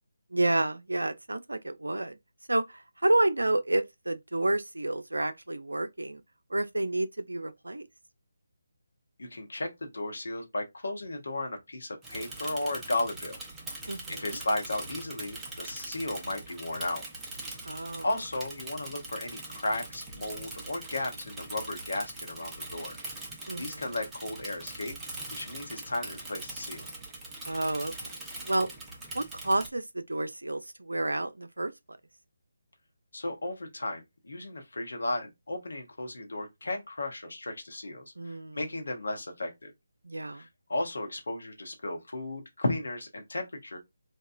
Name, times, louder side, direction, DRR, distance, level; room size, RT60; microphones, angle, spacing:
voice 1, 0.3-2.1 2.5-6.2 6.5-7.8 13.9-14.4 17.7-18.1 23.5-23.8 27.5-27.9 28.4-28.7 29.1-31.7 38.2-38.6 40.1-40.4, right 2 dB, 75° right, 0.4 m, -30 dB
voice 2, 9.2-13.4 14.1-17.0 18.0-23.0 23.6-24.9 25.3-26.9 33.1-39.7 40.3-43.8, left 2 dB, 65° left, 0.9 m, -34 dB
Bicycle / Mechanisms, 12.0-29.7, right 2 dB, 5° right, 0.5 m, -42 dB
2.8 x 2.2 x 2.3 m
figure-of-eight pair, 150°, 0 cm